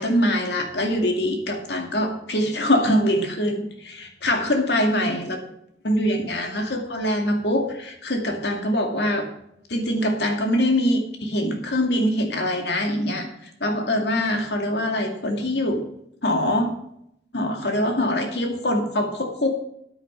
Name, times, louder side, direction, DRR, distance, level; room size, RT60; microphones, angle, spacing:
voice 1, 0.0-5.4 5.8-9.3 9.7-15.9 16.2-16.8 17.3-19.5, left 1 dB, 75° left, 4 dB, 2.2 m, -23 dB
9.5 x 9.1 x 5.5 m, 0.74 s
head